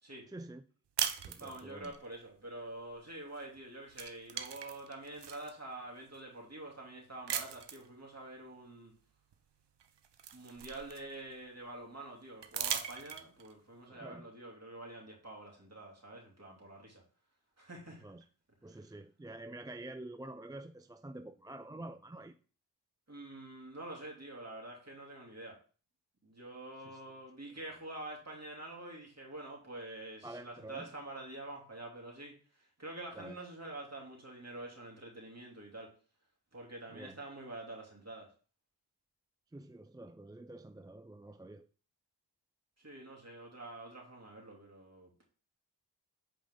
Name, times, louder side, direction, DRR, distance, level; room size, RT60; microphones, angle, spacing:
voice 1, 0.3-0.6 1.2-1.9 13.9-14.3 17.9-18.2 18.6-22.4 26.8-27.0 30.2-30.9 33.1-33.4 36.9-37.2 39.5-41.7, right 2 dB, 10° right, 0.4 m, -48 dB
sound 1, 1.0-2.0 3.4-3.6 3.9-5.5 6.1-6.2 7.3-7.9 9.3-9.4 9.8-11.3 12.4-13.5, right 8 dB, 75° right, 0.9 m, -39 dB
voice 2, 1.4-8.9 10.3-17.0 17.6-18.0 23.1-25.6 26.2-35.9 36.5-38.3 42.8-45.1, right 2 dB, 35° right, 2.9 m, -47 dB
7.7 x 5.0 x 3.8 m
cardioid pair, 50°, 42 cm